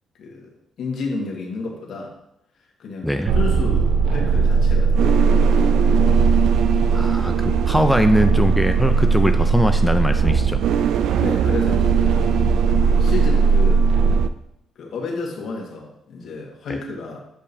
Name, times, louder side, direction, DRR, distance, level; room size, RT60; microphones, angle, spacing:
voice 1, 0.2-0.5 0.8-2.1 2.8-6.1 11.2-12.4 13.0-13.9 14.7-17.2, left 3 dB, 65° left, 0 dB, 1.5 m, -31 dB
voice 2, 3.0-3.3 6.9-10.6, equal, ahead, 6 dB, 0.4 m, -21 dB
sound 1, 3.3-14.3, right 5 dB, 80° right, 0.3 m, -18 dB
8.4 x 5.2 x 2.7 m, 0.82 s
cardioid pair, 90°, 0 cm